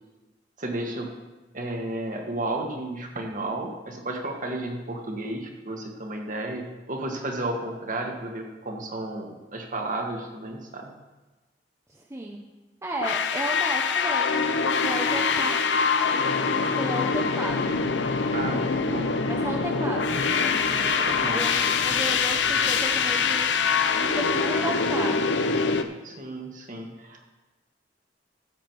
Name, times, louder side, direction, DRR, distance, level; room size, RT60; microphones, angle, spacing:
voice 1, 0.6-1.2 1.5-10.9 18.3-19.2 21.0-21.4 26.0-27.3, right 2 dB, 45° right, 2 dB, 1.6 m, -33 dB
voice 2, 11.9-12.4 12.8-15.6 16.1-17.8 19.3-25.3, right 2 dB, 15° right, 0 dB, 0.7 m, -34 dB
sound 1, 13.0-25.8, left 5 dB, 70° left, 0.7 m, -24 dB
sound 2, 17.4-24.3, equal, 40° left, 1.7 m, -45 dB
13.5 x 7.3 x 4.6 m, 1.1 s
head